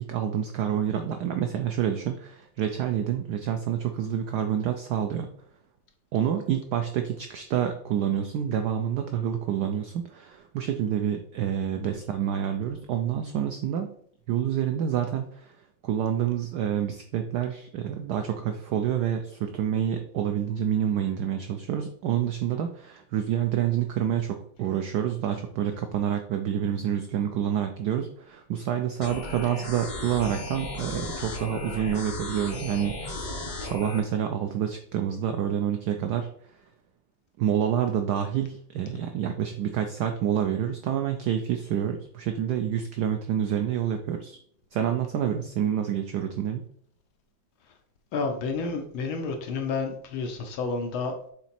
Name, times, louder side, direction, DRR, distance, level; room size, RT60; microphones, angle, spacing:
voice 1, 0.0-5.3 6.1-13.9 14.3-15.6 15.8-33.3 33.6-36.3 37.4-44.4 44.7-46.6, right 9 dB, 80° right, 6 dB, 0.9 m, -28 dB
sound 1, 29.0-34.0, left 2 dB, 40° left, 0.6 m, -35 dB
voice 2, 48.1-51.1, left 4 dB, 75° left, 5 dB, 1.6 m, -30 dB
7.2 x 3.9 x 4.2 m, 0.64 s
omnidirectional pair, 2.3 m